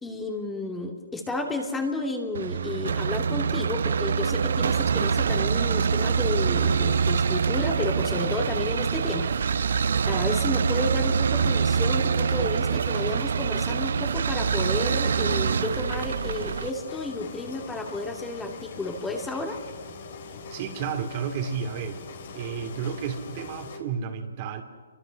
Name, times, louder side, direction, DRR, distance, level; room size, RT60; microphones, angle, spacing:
voice 1, 0.0-9.3 10.1-19.6, left 2 dB, 10° left, 2 dB, 2.4 m, -32 dB
sound 1, 2.3-16.7, right 6 dB, 65° right, 0.7 m, -25 dB
sound 2, 14.5-23.8, left 4 dB, 55° left, 4.1 m, -42 dB
voice 2, 20.5-22.0 22.3-24.6, right 7 dB, 35° right, 6 dB, 2.7 m, -32 dB
29.0 x 24.5 x 6.4 m, 1.5 s
hypercardioid pair, 155°, 0 cm